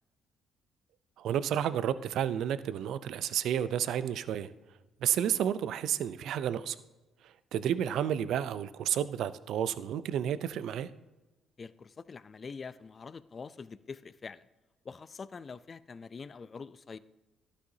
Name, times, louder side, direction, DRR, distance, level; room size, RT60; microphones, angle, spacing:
voice 1, 1.2-4.5 5.0-6.8 7.2-10.9, right 10 dB, 70° right, 0.5 m, -31 dB
voice 2, 11.6-14.4 14.8-17.0, left 5 dB, 40° left, 0.4 m, -45 dB
11.5 x 9.8 x 2.8 m
supercardioid pair, 60°, 0 cm